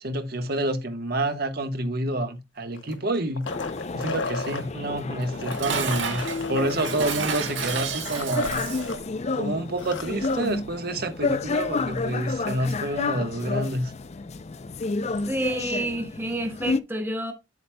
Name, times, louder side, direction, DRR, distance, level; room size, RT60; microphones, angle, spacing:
voice 1, 0.0-3.5 3.9-8.6 9.4-13.9, right 1 dB, 55° right, 1.2 m, -28 dB
sound 1, 2.7-4.6 5.3-9.0 9.3-9.4 9.7-10.5 12.0-12.1, left 3 dB, 85° left, 1.2 m, -35 dB
sound 2, 3.5-16.8, left 3 dB, 35° left, 0.5 m, -31 dB
Dishes pots and pans, 5.2-9.0, right 5 dB, 80° right, 1.7 m, -31 dB
voice 2, 15.3-17.3, right 1 dB, 10° right, 1.3 m, -29 dB
9.1 x 8.0 x 2.2 m
head